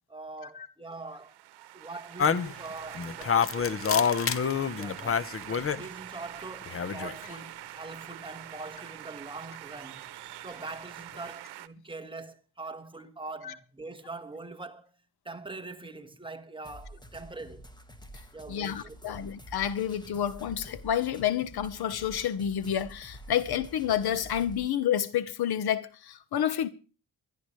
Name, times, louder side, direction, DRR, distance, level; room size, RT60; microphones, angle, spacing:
voice 1, 0.1-1.4 1.7-4.2 4.8-10.0 10.4-14.9 15.2-17.6 18.3-19.3, right 3 dB, 15° right, 1.4 m, -43 dB
sound 1, 1.0-11.7, right 14 dB, 90° right, 0.9 m, -44 dB
sound 2, 2.2-5.8 6.6-7.3, left 7 dB, 35° left, 0.9 m, -27 dB
sound 3, 16.6-24.6, equal, 10° left, 1.7 m, -48 dB
voice 2, 18.5-26.7, left 10 dB, 75° left, 1.2 m, -29 dB
24.0 x 11.5 x 3.2 m
cardioid pair, 120°, 39 cm